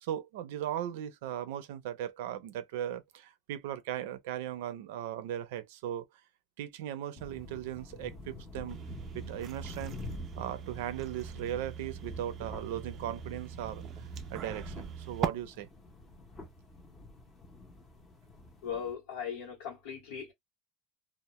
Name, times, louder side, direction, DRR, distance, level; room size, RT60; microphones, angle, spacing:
voice 1, 0.0-6.1 6.6-8.8 9.1-10.0 10.4-15.7, right 11 dB, 85° right, 0.5 m, -38 dB
sound 1, 7.2-18.9, left 2 dB, 20° left, 0.6 m, -47 dB
sound 2, 8.7-15.3, right 8 dB, 30° right, 0.3 m, -41 dB
voice 2, 18.6-20.3, left 7 dB, 80° left, 0.9 m, -38 dB
2.1 x 2.1 x 2.9 m
cardioid pair, 165°, 0 cm